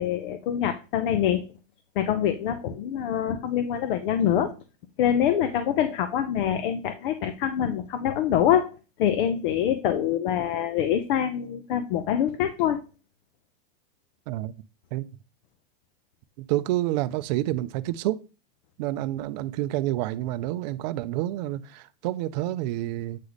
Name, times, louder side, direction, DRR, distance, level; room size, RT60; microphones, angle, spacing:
voice 1, 0.0-1.4 2.0-4.5 5.0-12.8, left 9 dB, 60° left, 0.8 m, -25 dB
voice 2, 16.5-18.2 18.8-23.2, right 15 dB, 45° right, 0.5 m, -28 dB
8.3 x 3.2 x 4.0 m
supercardioid pair, 160°, 30 cm